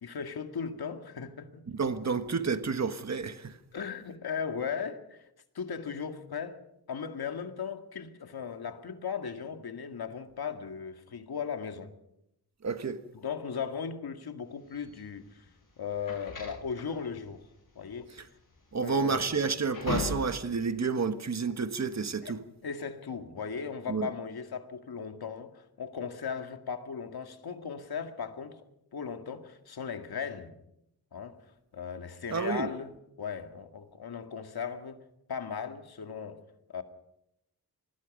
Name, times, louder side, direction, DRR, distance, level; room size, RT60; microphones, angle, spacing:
voice 1, 0.0-1.7 3.7-5.3 5.5-6.6 6.9-11.9 13.1-15.5 15.8-17.4 17.8-18.1 18.8-19.4 22.2-22.3 22.6-28.6 28.9-30.6 31.1-31.4 31.7-35.0 35.3-36.4 36.7-36.8, left 6 dB, 75° left, 2.0 m, -37 dB
voice 2, 1.7-3.6 12.6-13.0 18.7-22.4 23.9-24.1 32.3-32.7, right 5 dB, 45° right, 1.5 m, -30 dB
sound 1, 14.7-20.6, left 3 dB, 55° left, 7.4 m, -38 dB
26.5 x 20.5 x 5.3 m
wide cardioid pair, 135°, 38 cm